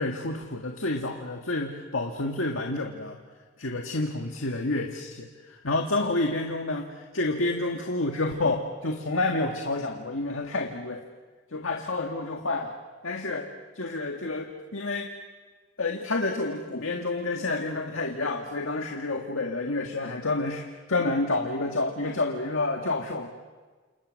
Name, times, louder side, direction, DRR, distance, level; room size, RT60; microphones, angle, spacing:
voice 1, 0.0-3.2 3.6-11.0 11.5-12.7 13.0-13.5 13.8-15.1 15.8-23.3, left 2 dB, 85° left, 2 dB, 1.9 m, -29 dB
29.0 x 28.5 x 6.5 m, 1.4 s
head